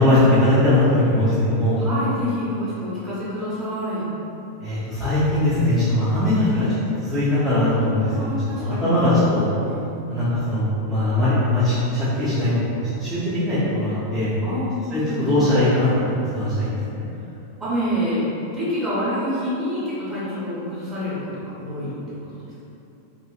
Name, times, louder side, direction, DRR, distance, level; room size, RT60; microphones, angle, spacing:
voice 1, 0.0-1.8 4.6-6.7 7.0-9.5 10.1-14.3 14.9-17.1, left 1 dB, ahead, -16 dB, 0.7 m, -20 dB
voice 2, 1.8-4.1 6.1-6.8 8.1-10.4 14.4-15.5 17.6-18.3 18.5-21.2 21.6-21.9 22.3-22.6, equal, 15° right, -11 dB, 1.2 m, -28 dB
2.8 x 2.6 x 2.4 m, 2.8 s
figure-of-eight pair, 90°, 0 cm